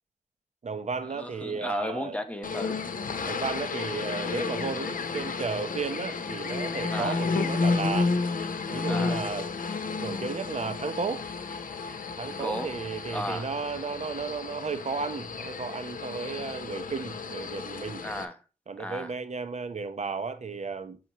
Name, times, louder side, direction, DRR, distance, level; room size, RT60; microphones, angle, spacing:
voice 1, 0.6-2.2 3.2-8.1 8.7-9.5 10.0-11.2 12.2-18.0 18.7-21.0, right 4 dB, 55° right, 0.8 m, -34 dB
voice 2, 1.1-2.9 6.9-7.2 8.9-9.2 12.3-12.7 13.1-13.5 18.0-18.4 18.8-19.1, equal, 10° left, 1.0 m, -34 dB
sound 1, 2.4-18.3, left 4 dB, 85° left, 0.8 m, -32 dB
6.7 x 6.1 x 3.0 m
wide cardioid pair, 85°, 14 cm